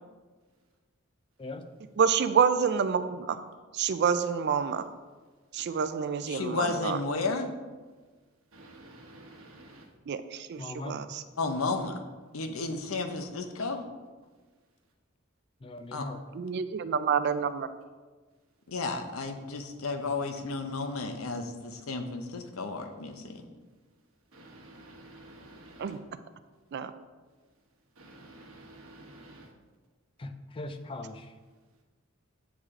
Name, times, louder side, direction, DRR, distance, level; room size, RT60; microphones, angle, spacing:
voice 1, 2.0-3.4 3.7-4.8 5.5-7.0 10.1-11.2 16.3-17.7 25.8-26.0 26.7-26.9, right 6 dB, 55° right, 11 dB, 0.4 m, -28 dB
voice 2, 6.3-7.5 11.4-11.9 12.3-13.8 15.9-16.1 18.7-23.3, left 3 dB, 90° left, 7 dB, 0.7 m, -33 dB
voice 3, 8.5-9.9 24.3-26.0 28.0-29.5, right 1 dB, 75° right, 1 dB, 1.2 m, -50 dB
voice 4, 10.6-11.0 15.6-16.2 30.2-31.3, left 2 dB, 25° left, 8 dB, 0.4 m, -39 dB
8.1 x 4.8 x 3.7 m, 1.3 s
head